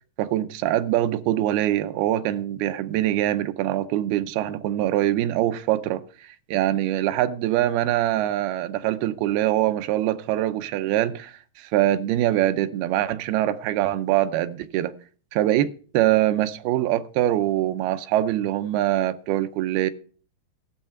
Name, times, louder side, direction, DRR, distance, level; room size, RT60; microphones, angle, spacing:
voice 1, 0.2-14.9 15.3-19.9, right 13 dB, 85° right, 2.6 m, -23 dB
14.5 x 6.5 x 5.7 m
omnidirectional pair, 4.3 m